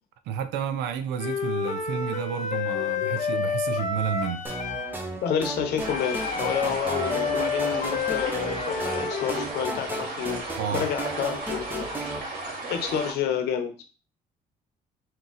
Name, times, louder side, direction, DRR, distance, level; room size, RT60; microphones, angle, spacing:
voice 1, 0.3-4.5 10.6-10.9, right 8 dB, 85° right, 0.5 m, -31 dB
Wind instrument woodwind instrument, 1.2-5.0 5.8-9.5, left 6 dB, 45° left, 0.6 m, -30 dB
voice 2, 2.7-3.1 5.2-10.4 10.7-12.1 12.7-13.7, left 8 dB, 75° left, 0.8 m, -29 dB
sound 1, 4.4-12.2, right 2 dB, 10° right, 0.8 m, -35 dB
sound 2, 5.8-13.1, right 2 dB, 55° right, 1.7 m, -35 dB
3.6 x 2.8 x 4.0 m
cardioid pair, 110°, 17 cm